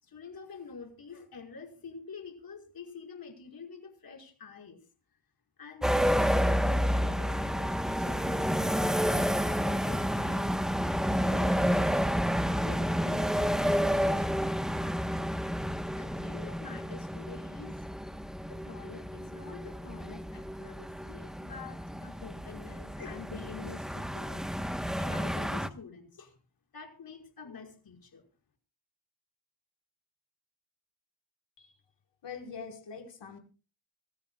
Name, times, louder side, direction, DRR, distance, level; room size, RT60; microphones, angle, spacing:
voice 1, 0.0-4.8 5.6-10.4 11.1-12.1 12.6-15.4 15.7-17.9 18.4-26.3 26.7-28.2, left 5 dB, 50° left, 2 dB, 5.4 m, -47 dB
sound 1, 5.8-25.7, equal, ahead, 1.1 m, -30 dB
voice 2, 32.2-33.4, left 5 dB, 65° left, 3 dB, 4.7 m, -43 dB
26.0 x 14.5 x 2.3 m, 0.34 s
cardioid pair, 90°, 46 cm